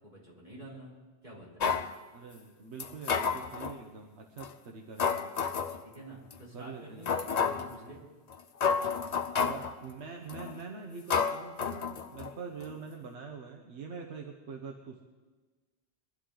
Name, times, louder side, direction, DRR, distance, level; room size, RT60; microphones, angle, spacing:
voice 1, 0.0-0.9 1.2-1.7 5.8-8.0, right 1 dB, 40° right, -6 dB, 4.1 m, -48 dB
sound 1, 1.6-1.9 2.8-3.8 4.4-4.5 5.0-5.8 6.3-6.4 7.1-7.7 8.3-8.4 8.6-9.7 10.3-10.6 11.1-12.3 12.6-12.7, left 6 dB, 45° left, 0.6 m, -30 dB
voice 2, 2.1-5.3 6.5-7.7 9.3-15.0, right 5 dB, 90° right, 2 dB, 1.2 m, -44 dB
23.5 x 11.5 x 3.9 m, 1.3 s
omnidirectional pair, 1.1 m